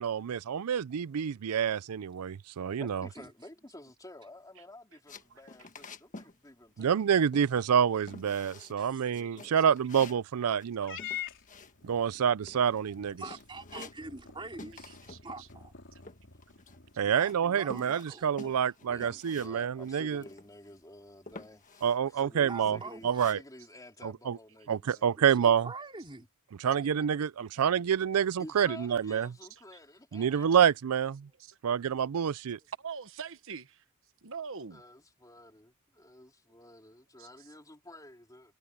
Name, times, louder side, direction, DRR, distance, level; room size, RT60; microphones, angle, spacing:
voice 1, 0.0-3.1 6.8-11.0 11.8-13.2 17.0-20.2 21.8-22.8 23.0-23.4 24.0-24.4 24.7-25.7 26.6-29.3 30.1-31.3 31.6-32.6, right 8 dB, 90° right, 0.4 m, -27 dB
voice 2, 2.8-7.1 9.1-9.7 18.9-25.1 27.0-27.1 28.4-30.6 34.7-38.5, left 1 dB, 15° left, 3.7 m, -51 dB
sound 1, 5.1-6.4 6.6-7.1 7.3-7.8 8.1-8.8 9.1-12.2 12.5-12.9 13.2-14.3 14.6-15.2 15.5-16.9 17.3-19.5 19.8-19.9 20.2-20.8 21.3-22.0 22.4-23.3, left 3 dB, 35° left, 1.4 m, -49 dB
Purr / Meow, 10.8-17.3, left 9 dB, 60° left, 4.2 m, -46 dB
voice 3, 13.2-15.0 15.2-15.7 17.0-18.6 22.4-23.3 25.1-26.3, right 3 dB, 25° right, 3.2 m, -45 dB
voice 4, 15.1-15.5 18.1-18.2 24.9-25.0 31.4-31.6 32.7-33.8 34.2-34.8 37.2-37.3, right 6 dB, 65° right, 1.2 m, -43 dB
head